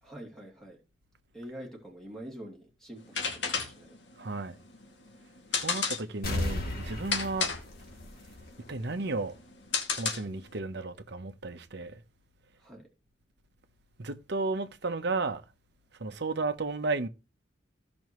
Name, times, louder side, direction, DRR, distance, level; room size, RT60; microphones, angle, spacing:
voice 1, 0.0-0.8 1.3-4.0 12.6-12.9, right 1 dB, 5° left, 2.8 m, -45 dB
sound 1, 3.0-10.6, left 5 dB, 80° left, 2.3 m, -34 dB
voice 2, 4.2-4.5 5.5-7.5 8.7-9.3 9.9-12.0 14.0-15.4 16.0-17.1, right 3 dB, 65° right, 1.0 m, -33 dB
sound 2, 6.2-8.8 9.2-9.3, left 2 dB, 55° left, 2.8 m, -35 dB
15.5 x 6.2 x 3.1 m
head